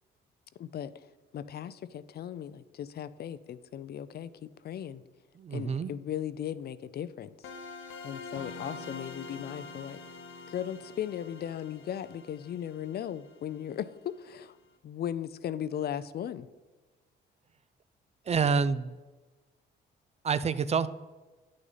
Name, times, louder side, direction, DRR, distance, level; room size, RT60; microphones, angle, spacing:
voice 1, 0.6-1.1 1.3-5.0 5.5-7.3 8.0-10.0 10.5-14.6 14.8-16.5, left 10 dB, 55° left, 15 dB, 0.4 m, -37 dB
voice 2, 5.4-5.9 18.3-18.9 20.2-20.9, right 5 dB, 35° right, 14 dB, 0.4 m, -27 dB
sound 1, 7.4-14.1, left 4 dB, 75° left, 0.9 m, -45 dB
8.9 x 6.3 x 4.0 m, 1.2 s
cardioid pair, 90°, 20 cm